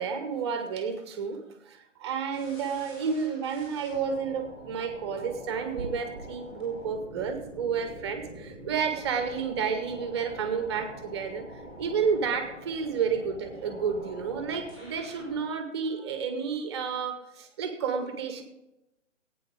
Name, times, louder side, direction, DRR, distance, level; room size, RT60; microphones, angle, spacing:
voice 1, 0.0-11.4 11.8-18.4, right 6 dB, 20° right, 7 dB, 1.2 m, -31 dB
sound 1, 2.3-15.4, equal, 15° left, 5.3 m, -45 dB
17.5 x 9.2 x 3.7 m, 0.91 s
figure-of-eight pair, 140°, 37 cm